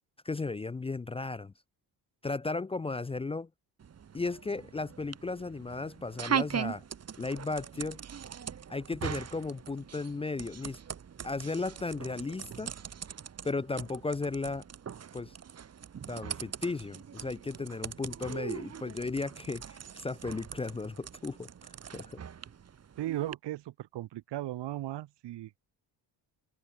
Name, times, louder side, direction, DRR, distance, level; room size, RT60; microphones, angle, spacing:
voice 1, 0.2-1.5 2.2-3.5 4.1-6.8 7.2-8.0 8.7-10.8 11.2-12.7 13.4-14.6 15.1-15.3 16.1-21.5 21.9-22.2, left 3 dB, 15° left, 0.6 m, -35 dB
sound 1, 3.8-23.3, right 8 dB, 40° right, 5.0 m, -41 dB
voice 2, 23.0-25.7, right 14 dB, 80° right, 3.7 m, -37 dB
cardioid pair, 165°, 41 cm